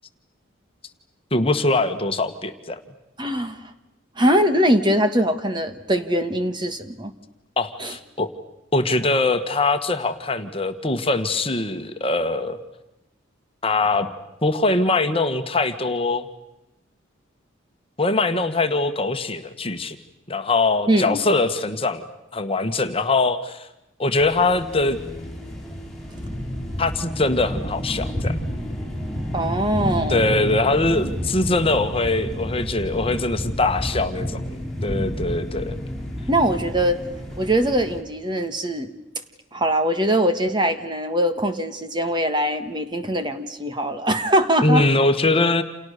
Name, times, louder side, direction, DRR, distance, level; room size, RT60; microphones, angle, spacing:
voice 1, 1.3-2.8 7.6-8.3 8.7-12.6 13.6-14.1 14.4-16.3 18.0-20.0 20.3-22.0 22.3-23.7 24.0-25.0 26.8-28.3 30.1-35.8 44.6-45.6, left 2 dB, 30° left, 8 dB, 1.6 m, -22 dB
voice 2, 3.2-3.6 4.2-7.1 7.8-7.9 20.9-21.2 29.3-30.2 36.3-37.0 37.4-38.9 39.5-44.8, right 1 dB, 25° right, 8 dB, 1.6 m, -22 dB
sound 1, 24.2-38.0, equal, ahead, 6.4 m, -30 dB
29.5 x 28.5 x 6.8 m, 0.92 s
head